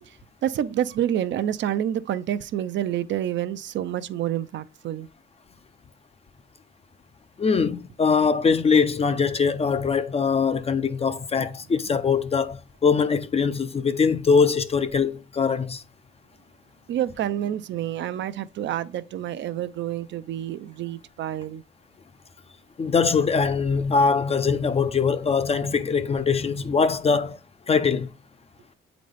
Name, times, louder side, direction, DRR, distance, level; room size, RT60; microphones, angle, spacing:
voice 1, 0.0-5.1 16.9-21.6, right 11 dB, 65° right, 0.6 m, -28 dB
voice 2, 7.4-15.8 22.8-27.4 27.7-28.1, left 5 dB, 30° left, 0.5 m, -22 dB
7.7 x 4.0 x 3.3 m
cardioid pair, 90°, 20 cm